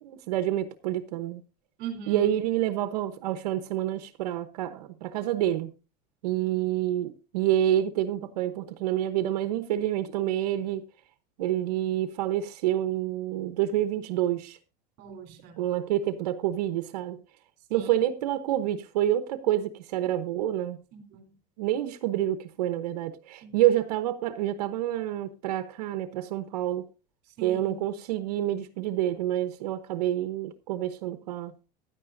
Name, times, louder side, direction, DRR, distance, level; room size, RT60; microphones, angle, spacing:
voice 1, 0.0-1.4 2.1-5.7 6.2-10.8 11.4-14.6 15.6-17.2 17.7-20.8 21.6-26.8 27.4-31.5, right 12 dB, 90° right, 1.0 m, -28 dB
voice 2, 1.8-2.3 15.0-15.7 17.7-18.0 20.9-21.4 23.4-23.6 27.4-27.8, right 6 dB, 55° right, 3.5 m, -41 dB
15.5 x 10.5 x 2.6 m
supercardioid pair, 135°, 20 cm